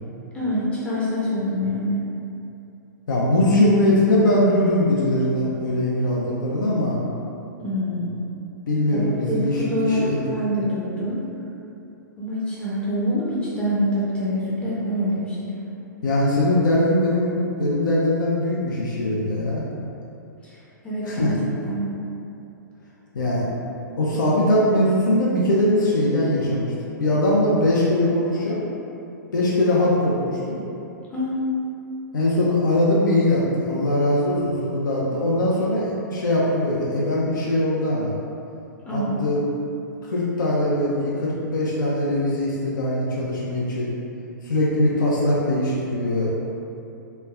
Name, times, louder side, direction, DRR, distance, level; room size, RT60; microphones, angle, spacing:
voice 1, 0.3-2.0 7.6-8.2 8.9-11.2 12.2-15.5 20.4-21.3 21.6-21.8 31.1-31.4 38.9-39.1, equal, 10° left, -8 dB, 0.5 m, -25 dB
voice 2, 3.1-7.0 8.7-10.2 16.0-17.3 17.6-19.7 21.0-21.3 23.1-23.5 24.0-26.7 27.0-28.6 29.3-30.6 32.1-38.1 38.9-39.4 40.0-43.9 44.4-46.3, left 1 dB, 75° left, -5 dB, 0.5 m, -21 dB
3.1 x 2.2 x 2.3 m, 2.8 s
hypercardioid pair, 120°, 10 cm